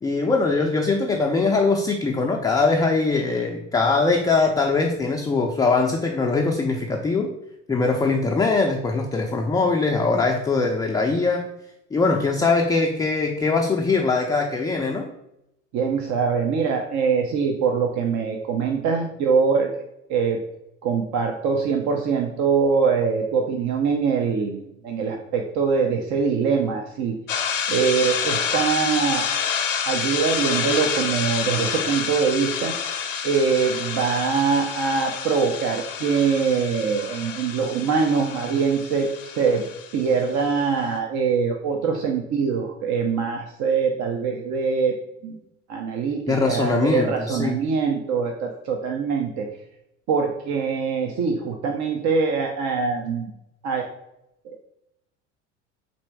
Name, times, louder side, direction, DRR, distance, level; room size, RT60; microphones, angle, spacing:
voice 1, 0.0-7.3 7.7-11.5 11.9-15.1 46.3-47.5, left 3 dB, 10° left, 1 dB, 0.4 m, -22 dB
voice 2, 15.7-19.7 20.1-20.4 20.8-27.2 27.7-29.3 29.9-32.7 33.2-39.6 39.9-45.0 45.2-45.4 45.7-49.5 50.1-53.3 53.6-53.9 54.4-54.6, right 5 dB, 50° right, 2 dB, 0.7 m, -23 dB
sound 1, 27.3-40.6, left 7 dB, 85° left, 0.7 m, -28 dB
4.1 x 2.6 x 4.6 m, 0.83 s
hypercardioid pair, 75°, 38 cm